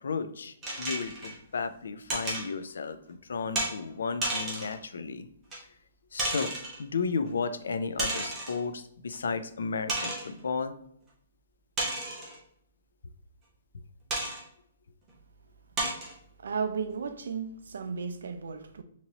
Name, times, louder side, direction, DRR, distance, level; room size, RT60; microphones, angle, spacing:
voice 1, 0.0-5.3 6.1-10.7, left 5 dB, 90° left, 0.4 m, -33 dB
sound 1, 0.6-1.4 2.1-2.5 3.6-3.7 4.2-4.8 5.5-5.6 6.2-6.8 8.0-8.6 9.1-9.2 9.9-10.3 11.8-12.4 14.1-14.4 15.1-15.2 15.8-16.1, right 1 dB, 10° right, 0.7 m, -32 dB
voice 2, 16.4-18.8, right 5 dB, 75° right, 0.5 m, -34 dB
4.0 x 3.0 x 2.8 m
hypercardioid pair, 180°, 0 cm